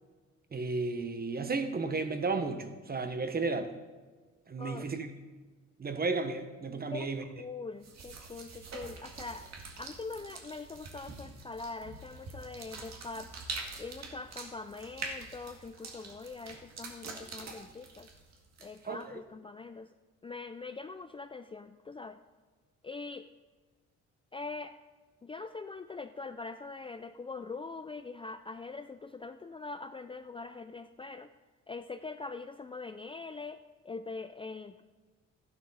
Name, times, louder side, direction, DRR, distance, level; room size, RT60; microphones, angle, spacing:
voice 1, 0.5-3.7 4.5-5.1 5.8-7.2 18.9-19.0, right 3 dB, 30° right, 9 dB, 1.1 m, -33 dB
voice 2, 6.9-9.5 9.8-13.3 13.8-18.1 18.6-19.9 20.2-22.2 22.8-23.3 24.3-24.7 25.2-31.3 31.7-33.6 33.8-34.8, left 3 dB, 20° left, 9 dB, 0.4 m, -43 dB
sound 1, 7.8-19.0, right 3 dB, 60° right, 1.9 m, -45 dB
12.5 x 11.0 x 4.1 m, 1.3 s
cardioid pair, 90°, 30 cm